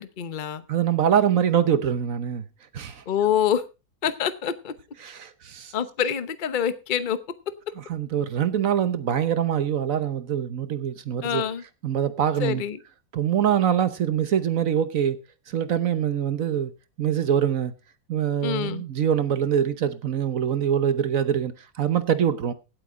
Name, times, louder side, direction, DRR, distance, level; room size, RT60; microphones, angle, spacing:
voice 1, 0.0-0.6 3.1-3.6 4.0-4.7 5.7-7.2 11.2-11.6 12.4-12.8 18.4-18.8, left 9 dB, 40° left, 0.8 m, -26 dB
voice 2, 0.7-2.4 2.7-3.0 5.0-5.7 7.9-11.4 11.8-12.6 13.1-15.2 15.5-16.7 17.0-17.7 18.1-22.5, right 9 dB, 55° right, 1.1 m, -24 dB
17.0 x 8.2 x 3.7 m
omnidirectional pair, 2.0 m